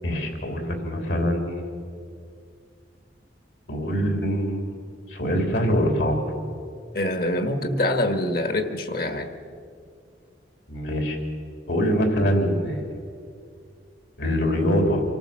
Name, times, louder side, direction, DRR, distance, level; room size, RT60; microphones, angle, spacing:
voice 1, 0.0-1.7 3.7-4.6 5.1-6.2 10.7-11.2 11.7-12.8 14.2-15.0, equal, 75° left, 3 dB, 3.4 m, -24 dB
voice 2, 6.9-9.3, left 1 dB, 55° left, 8 dB, 1.5 m, -25 dB
25.5 x 14.0 x 7.5 m, 2.4 s
head